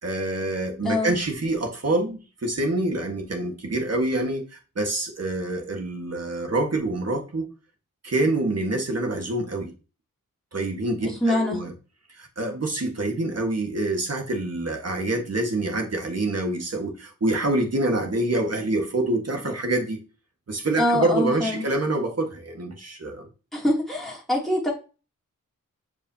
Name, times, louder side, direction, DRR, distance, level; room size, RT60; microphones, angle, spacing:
voice 1, 0.0-7.5 8.0-9.7 10.5-11.7 12.1-20.0 20.5-23.3, right 2 dB, 50° right, 3 dB, 1.6 m, -26 dB
voice 2, 0.8-1.1 11.0-11.6 20.8-21.6 23.5-24.7, left 1 dB, ahead, -4 dB, 2.8 m, -24 dB
7.2 x 5.0 x 2.8 m, 0.32 s
wide cardioid pair, 90°, 33 cm